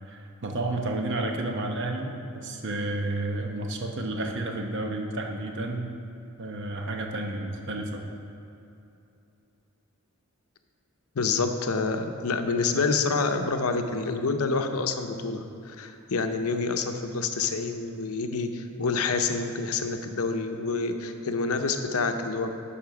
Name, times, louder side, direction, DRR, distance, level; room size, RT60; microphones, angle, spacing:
voice 1, 0.0-5.9 6.4-8.0, right 2 dB, 55° right, 2 dB, 0.9 m, -31 dB
voice 2, 11.1-22.6, left 4 dB, 85° left, 6 dB, 0.6 m, -27 dB
10.5 x 4.3 x 5.9 m, 2.8 s
head